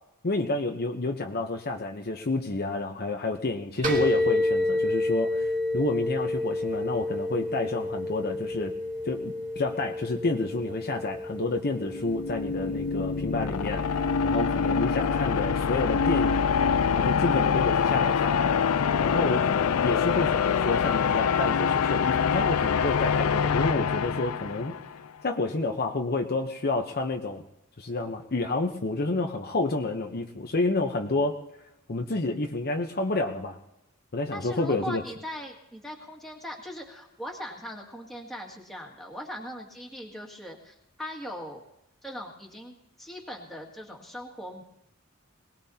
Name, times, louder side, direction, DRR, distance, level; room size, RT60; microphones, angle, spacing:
voice 1, 0.2-8.7 9.0-13.8 14.2-16.4 16.9-18.5 19.0-24.7 25.2-27.4 27.8-31.4 31.9-33.6 34.1-35.0, left 2 dB, 45° left, 3 dB, 0.9 m, -29 dB
sound 1, 3.8-21.2, left 1 dB, 35° right, 2.5 m, -32 dB
sound 2, 11.8-24.9, left 6 dB, 85° left, 0.5 m, -25 dB
voice 2, 34.3-41.6 42.0-44.6, equal, ahead, -1 dB, 2.2 m, -40 dB
22.0 x 19.0 x 2.9 m, 0.88 s
head